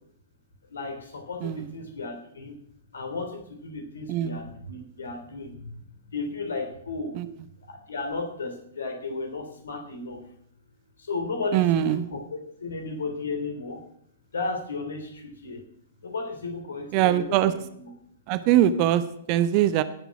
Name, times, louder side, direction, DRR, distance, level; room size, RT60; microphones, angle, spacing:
voice 1, 0.7-2.5 2.9-5.7 6.1-7.2 7.7-10.2 11.0-13.8 14.3-15.6 16.0-17.9, left 3 dB, 65° left, 6 dB, 3.2 m, -34 dB
voice 2, 4.1-4.4 7.1-7.3 11.5-12.1 16.9-17.5 18.3-19.8, right 12 dB, 35° right, 13 dB, 0.9 m, -22 dB
17.5 x 7.2 x 5.9 m, 0.71 s
figure-of-eight pair, 110°, 0 cm